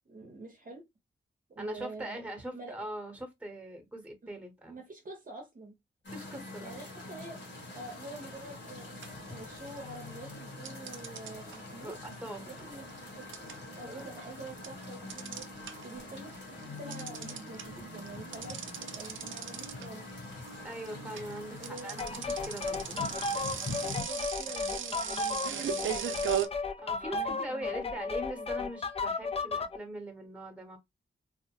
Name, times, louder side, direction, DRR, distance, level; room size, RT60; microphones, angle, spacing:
voice 1, 0.1-0.8 1.6-2.3 2.5-2.7 4.7-5.7 6.6-7.4 7.7-12.0 12.5-13.5 13.8-16.4 16.7-20.0 21.6-22.0 23.1-23.2 23.7-26.2 27.1-28.7, right 2 dB, 45° right, 0.7 m, -46 dB
voice 2, 1.6-4.8 6.1-6.7 11.8-12.5 13.8-14.1 20.6-23.0 26.8-30.8, right 1 dB, 5° right, 1.0 m, -42 dB
sound 1, 6.0-24.0, left 2 dB, 65° left, 1.2 m, -44 dB
sound 2, 8.4-8.7 9.0-10.0 10.7-16.0 16.3-26.5, right 9 dB, 90° right, 0.4 m, -37 dB
sound 3, 22.0-29.8, left 3 dB, 30° left, 0.4 m, -34 dB
2.6 x 2.1 x 2.9 m
wide cardioid pair, 80°, 20 cm